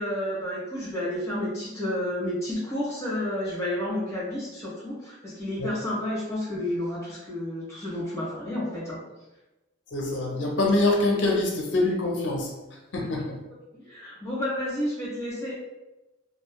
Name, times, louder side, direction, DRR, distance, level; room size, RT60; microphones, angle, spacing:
voice 1, 0.0-9.0 13.0-13.1 13.7-15.6, left 1 dB, 15° left, -8 dB, 1.2 m, -31 dB
voice 2, 9.9-12.5 12.9-13.4, left 2 dB, 70° left, -1 dB, 0.5 m, -24 dB
2.9 x 2.3 x 2.2 m, 1.0 s
head